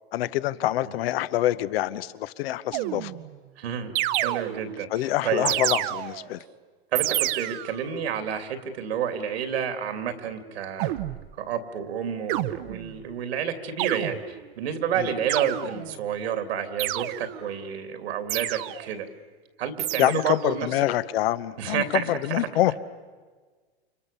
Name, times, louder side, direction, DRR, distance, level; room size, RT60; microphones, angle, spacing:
voice 1, 0.1-3.1 4.9-6.4 15.0-15.1 20.0-22.7, left 14 dB, 70° left, 15 dB, 1.1 m, -26 dB
sound 1, 2.7-3.4 4.0-4.9 5.5-6.4 7.0-7.9 10.8-11.3 12.3-13.0 13.8-14.5 15.3-16.0 16.8-17.5 18.3-19.0 19.8-20.5, right 16 dB, 55° right, 0.9 m, -29 dB
voice 2, 3.6-4.9 5.2-5.5 6.9-10.9 11.4-19.1 19.6-20.7 21.6-22.4, right 8 dB, 80° right, 8 dB, 2.9 m, -30 dB
29.0 x 25.5 x 7.0 m, 1.5 s
hypercardioid pair, 120°, 31 cm